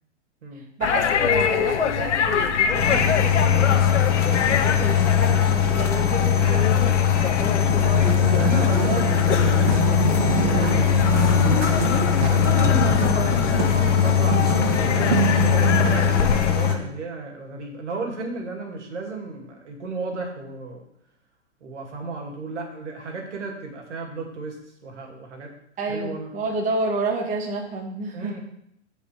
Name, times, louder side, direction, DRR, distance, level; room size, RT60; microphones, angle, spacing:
sound 1, 0.8-16.5, left 7 dB, 85° left, 1.0 m, -26 dB
voice 1, 0.8-8.3 8.7-9.0 25.8-28.3, right 3 dB, 20° right, 0 dB, 1.8 m, -30 dB
sound 2, 2.7-16.8, left 9 dB, 25° left, 1.3 m, -21 dB
sound 3, 7.5-16.4, right 5 dB, 55° right, 2.5 m, -26 dB
voice 2, 8.4-11.0 12.3-20.8 21.6-25.5 25.9-26.3 28.1-28.4, right 3 dB, 80° right, 1 dB, 2.6 m, -33 dB
14.0 x 5.2 x 3.5 m, 0.74 s
hypercardioid pair, 135°, 35 cm